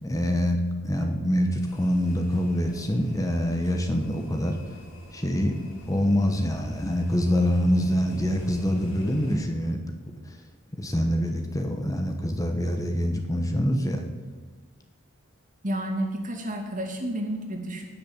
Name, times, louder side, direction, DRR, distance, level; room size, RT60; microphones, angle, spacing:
voice 1, 0.0-4.6 5.1-5.5 5.9-9.8 10.3-10.4 10.8-14.0, equal, 15° left, 4 dB, 1.1 m, -25 dB
sound 1, 1.6-9.4, equal, 75° left, 4.0 m, -42 dB
voice 2, 15.6-17.8, right 1 dB, 40° right, 3 dB, 2.4 m, -30 dB
18.5 x 6.8 x 7.3 m, 1.3 s
head